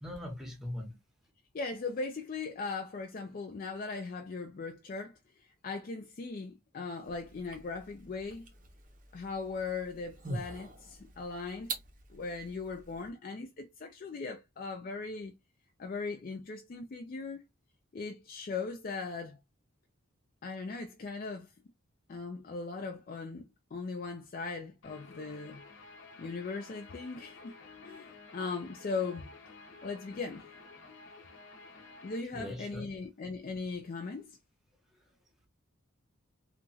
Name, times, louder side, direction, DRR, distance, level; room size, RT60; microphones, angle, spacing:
voice 1, 0.0-1.0 32.3-32.9 35.0-35.1, left 1 dB, ahead, 0.8 m, -41 dB
voice 2, 1.5-8.5 9.1-11.7 12.1-15.3 15.8-17.4 17.9-19.4 20.4-21.5 22.1-25.6 26.2-29.3 29.8-30.5 32.0-34.4, left 4 dB, 40° left, 0.3 m, -39 dB
sound 1, 7.0-13.1, right 3 dB, 40° right, 0.6 m, -45 dB
Guitar, 24.8-32.2, left 4 dB, 60° left, 0.7 m, -52 dB
2.9 x 2.3 x 2.6 m
head